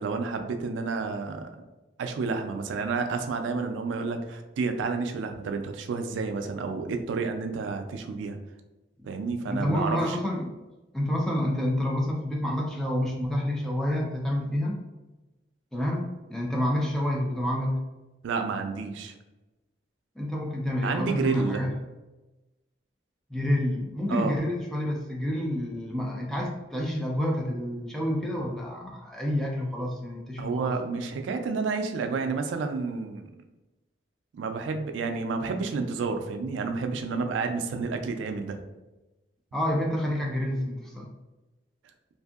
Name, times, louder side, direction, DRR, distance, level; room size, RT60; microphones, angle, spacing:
voice 1, 0.0-1.5 2.0-8.4 9.0-10.2 18.2-19.1 20.8-21.6 24.1-24.4 30.4-33.2 34.3-38.6, right 4 dB, 90° right, 6 dB, 0.3 m, -30 dB
voice 2, 9.5-10.6 10.9-14.8 15.7-17.8 20.2-21.7 23.3-30.7 39.5-41.1, left 1 dB, ahead, -2 dB, 0.3 m, -28 dB
2.6 x 2.6 x 2.3 m, 1.1 s
head